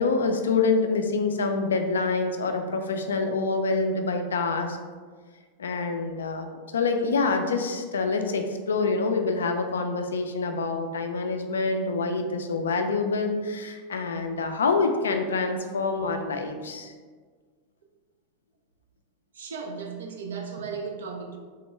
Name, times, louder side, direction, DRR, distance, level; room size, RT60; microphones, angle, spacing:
voice 1, 0.0-4.8 5.6-16.9, left 4 dB, 85° left, 5 dB, 0.3 m, -26 dB
voice 2, 19.3-21.4, right 5 dB, 80° right, 3 dB, 0.5 m, -35 dB
3.5 x 2.2 x 3.1 m, 1.5 s
hypercardioid pair, 100°, 0 cm